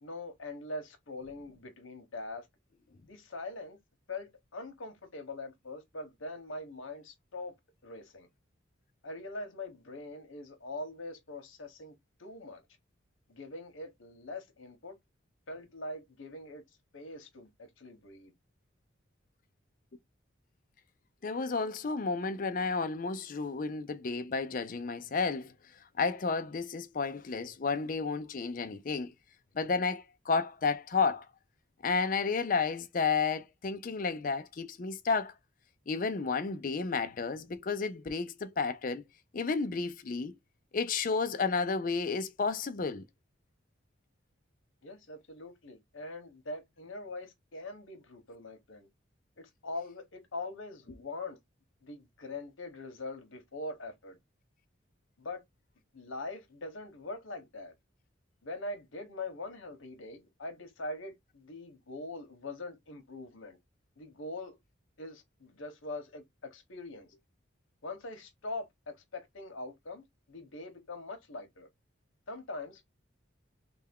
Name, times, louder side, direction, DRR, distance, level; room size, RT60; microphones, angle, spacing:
voice 1, 0.0-2.5 3.1-3.8 4.1-7.6 7.8-8.3 9.0-11.9 12.2-12.6 13.3-15.0 15.5-16.6 16.9-18.3 44.8-48.9 49.4-51.4 51.8-54.2 55.2-55.4 55.9-57.7 58.4-63.6 64.0-64.6 65.0-67.1 67.8-71.7 72.3-72.8, left 2 dB, 80° left, 1.0 m, -42 dB
voice 2, 21.2-25.5 26.0-29.1 29.5-31.3 31.8-35.3 35.9-39.0 39.3-40.3 40.7-43.0, left 4 dB, 40° left, 0.4 m, -32 dB
3.4 x 2.2 x 3.5 m
head